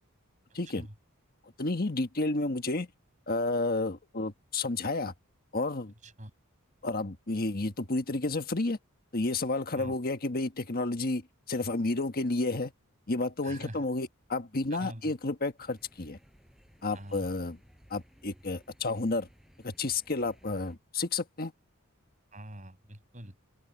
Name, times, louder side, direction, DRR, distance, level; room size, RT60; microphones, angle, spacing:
voice 1, 0.5-0.9 1.6-2.9 3.3-5.1 5.5-5.9 6.8-8.8 9.1-11.2 11.5-12.7 13.1-16.2 16.8-17.6 17.9-19.3 19.6-21.5, left 2 dB, 45° left, 1.5 m, -31 dB
voice 2, 13.4-13.8 14.7-15.1 16.9-17.3 22.3-23.3, right 1 dB, 35° right, 6.3 m, -44 dB
sound 1, 15.6-20.8, equal, ahead, 6.4 m, -60 dB
open air
head